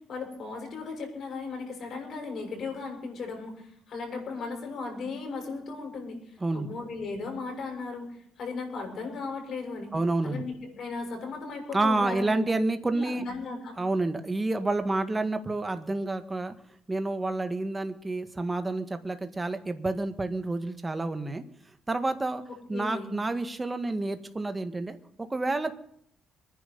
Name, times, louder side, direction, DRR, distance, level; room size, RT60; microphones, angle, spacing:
voice 1, 0.1-6.2 6.5-8.0 8.4-9.9 10.2-12.5 12.8-13.8 22.5-23.1, left 4 dB, 60° left, 2 dB, 7.1 m, -36 dB
voice 2, 9.9-10.4 11.7-13.2 13.8-16.5 16.9-21.4 21.9-22.4 22.7-25.0 25.3-25.9, right 2 dB, 20° right, 8 dB, 1.8 m, -29 dB
24.0 x 10.5 x 5.5 m, 0.66 s
cardioid pair, 90°, 0 cm